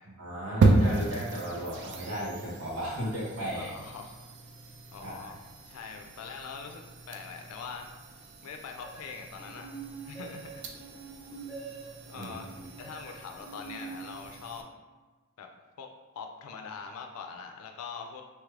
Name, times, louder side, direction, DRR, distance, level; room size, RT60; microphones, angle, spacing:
voice 1, 0.2-3.7 5.0-5.3 12.1-12.3, equal, 75° right, -7 dB, 1.3 m, -35 dB
sound 1, 0.6-14.6, right 2 dB, 55° right, 0.4 m, -33 dB
voice 2, 3.5-4.3 4.9-7.9 8.4-9.7 10.0-11.0 12.1-14.7 15.4-15.5 15.8-15.9 16.2-18.2, left 5 dB, 90° left, 4 dB, 0.4 m, -43 dB
sound 2, 8.8-14.6, right 4 dB, 30° right, 1.0 m, -45 dB
3.1 x 2.4 x 3.2 m, 1.3 s
head